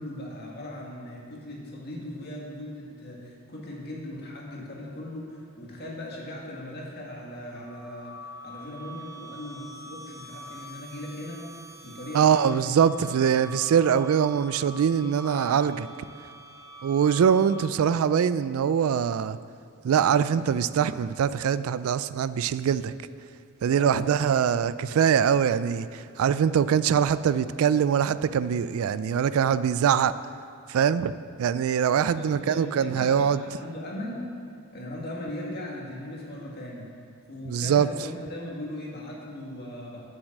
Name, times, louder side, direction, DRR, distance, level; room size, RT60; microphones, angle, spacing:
voice 1, 0.0-12.6 13.0-13.5 17.2-17.4 23.7-24.7 32.0-34.2 34.7-36.9 37.3-40.1, left 1 dB, 45° left, -2 dB, 1.8 m, -39 dB
sound 1, 7.6-17.9, equal, 15° right, 0.6 m, -44 dB
voice 2, 12.1-15.9 16.8-19.4 19.8-22.9 23.6-30.1 30.7-31.1 31.4-33.4 37.5-37.9, right 8 dB, 70° right, 15 dB, 0.3 m, -23 dB
7.8 x 7.3 x 6.5 m, 2.4 s
head